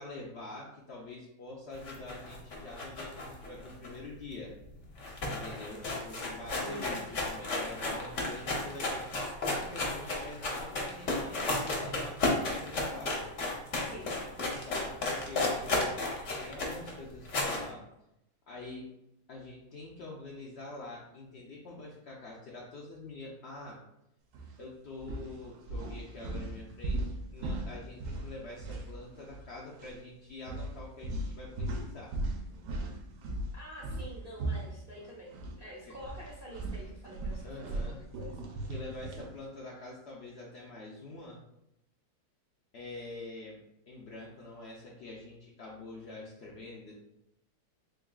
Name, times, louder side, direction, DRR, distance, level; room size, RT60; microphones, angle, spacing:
voice 1, 0.0-4.5 5.3-9.1 9.4-13.3 14.6-17.8 18.5-18.9 19.3-23.8 24.6-32.1 35.8-35.9 37.4-38.0 38.7-41.4 42.7-46.9, left 2 dB, 70° left, -4 dB, 0.6 m, -45 dB
sound 1, 1.8-4.4 4.7-4.8 5.0-17.7, left 2 dB, 55° left, 1.0 m, -33 dB
voice 2, 6.6-7.0 13.8-14.1 33.5-38.7, equal, 50° right, -5 dB, 0.7 m, -47 dB
sound 2, 24.3-24.5 25.0-29.5 29.7-29.9 30.5-35.6 35.9-39.3, right 2 dB, 80° right, 1.1 m, -38 dB
3.7 x 3.5 x 2.3 m, 0.84 s
omnidirectional pair, 1.8 m